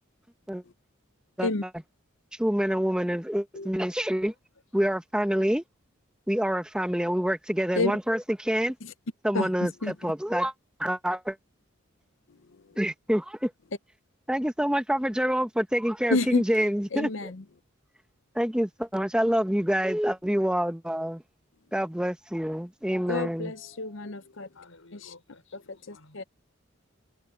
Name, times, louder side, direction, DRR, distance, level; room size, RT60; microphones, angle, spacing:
voice 1, 2.4-4.3 4.7-5.6 6.3-8.8 9.2-10.5 10.8-11.4 12.8-13.5 14.3-17.3 18.3-21.2 21.7-23.5, equal, 5° right, 1.0 m, -27 dB
voice 2, 9.3-9.9 12.5-12.8 16.1-17.4 23.1-24.5 26.1-26.2, left 3 dB, 65° left, 0.7 m, -30 dB
voice 3, 24.5-26.3, left 3 dB, 90° left, 5.8 m, -55 dB
head